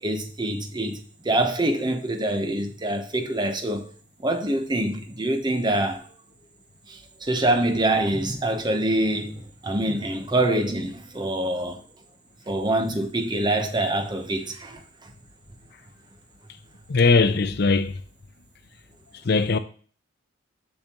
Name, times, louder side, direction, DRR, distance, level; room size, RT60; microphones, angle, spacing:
voice 1, 0.0-3.9 4.2-6.0 6.9-11.8 12.5-15.1, right 1 dB, 20° right, 0.9 m, -25 dB
voice 2, 16.9-17.9 19.2-19.6, left 4 dB, 55° left, 0.5 m, -19 dB
7.0 x 6.6 x 2.9 m
head